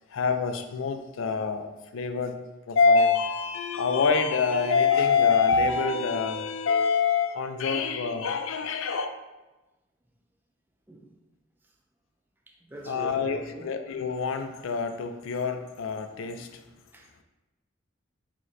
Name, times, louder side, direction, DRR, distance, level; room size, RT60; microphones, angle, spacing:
voice 1, 0.1-2.4 2.7-9.1 12.9-16.6, left 5 dB, 85° left, 8 dB, 0.4 m, -25 dB
voice 2, 12.5-13.7 16.9-17.2, right 1 dB, 10° right, 0 dB, 0.4 m, -43 dB
5.0 x 2.2 x 3.9 m, 1.1 s
head